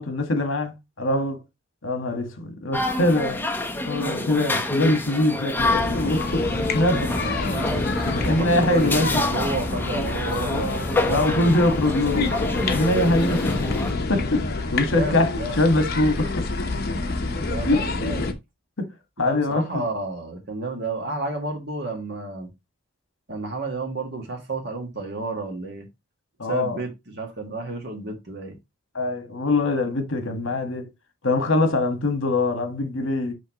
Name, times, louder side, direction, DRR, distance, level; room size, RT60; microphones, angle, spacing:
voice 1, 0.0-1.4 1.8-3.4 3.9-6.5 6.7-7.2 7.8-9.2 10.5-13.4 14.1-16.5 17.6-17.8 18.8-18.9 19.2-19.8 26.4-26.8 28.9-30.9 31.2-33.3, left 2 dB, 65° left, 1.4 m, -23 dB
sound 1, 2.7-13.9, left 2 dB, 10° left, 0.8 m, -27 dB
sound 2, 5.6-18.3, left 3 dB, 50° left, 0.9 m, -27 dB
voice 2, 7.2-7.6 8.2-11.6 14.9-15.6 17.4-18.2 19.2-22.5 23.3-25.9 26.5-28.6, right 3 dB, 55° right, 1.8 m, -31 dB
6.3 x 5.5 x 2.9 m
head